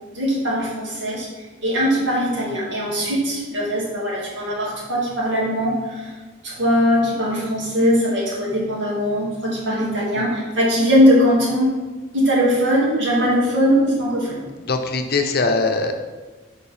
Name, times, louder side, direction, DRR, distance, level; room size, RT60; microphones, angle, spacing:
voice 1, 0.1-1.3 1.6-6.1 6.4-11.7 12.1-14.4, equal, 75° right, -5 dB, 2.0 m, -20 dB
voice 2, 14.7-15.9, left 3 dB, 55° left, 5 dB, 0.6 m, -21 dB
7.1 x 4.6 x 3.3 m, 1.3 s
head